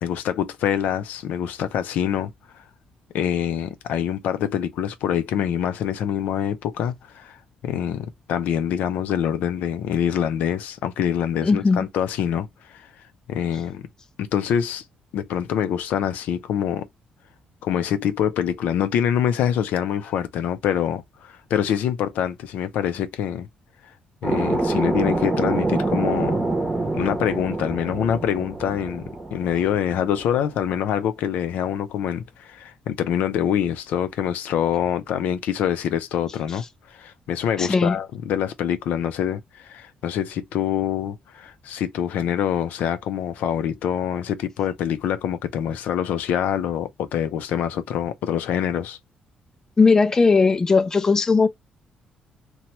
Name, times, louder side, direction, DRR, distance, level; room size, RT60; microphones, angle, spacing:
voice 1, 0.0-2.6 3.1-12.9 13.3-13.8 14.2-14.8 15.1-16.9 17.6-23.5 24.2-26.4 26.9-29.0 29.3-49.0, left 9 dB, 85° left, 0.4 m, -25 dB
voice 2, 11.4-11.9 37.6-38.0 49.8-51.5, left 4 dB, 20° left, 0.3 m, -18 dB
sound 1, 24.2-30.6, right 2 dB, 15° right, 0.7 m, -26 dB
2.8 x 2.2 x 3.0 m
cardioid pair, 135°, 3 cm